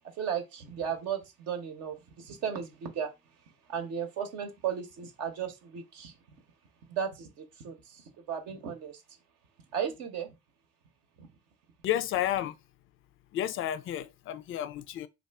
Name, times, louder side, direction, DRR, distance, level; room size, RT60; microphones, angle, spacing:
voice 1, 0.2-3.1 3.7-6.1 6.9-9.0 9.7-10.3 11.2-11.3, right 8 dB, 60° right, 0.8 m, -35 dB
voice 2, 11.8-12.6 13.3-15.1, left 11 dB, 45° left, 0.4 m, -31 dB
2.6 x 2.5 x 3.3 m
figure-of-eight pair, 45°, 29 cm